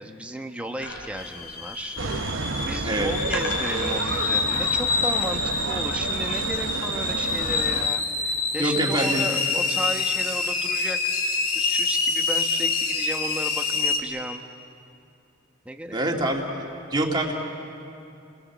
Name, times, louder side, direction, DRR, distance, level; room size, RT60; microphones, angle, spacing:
voice 1, 0.0-2.0 2.6-14.5 15.6-16.2, right 1 dB, 5° right, 4 dB, 1.1 m, -34 dB
sound 1, 0.8-5.7, left 1 dB, 60° left, 4.3 m, -37 dB
sound 2, 1.2-14.0, left 4 dB, 85° left, 2.7 m, -26 dB
sound 3, 2.0-7.9, right 3 dB, 65° right, 1.2 m, -31 dB
voice 2, 8.5-9.3 15.9-16.4 16.9-17.3, right 1 dB, 20° right, -1 dB, 2.3 m, -25 dB
30.0 x 21.0 x 7.3 m, 2.6 s
head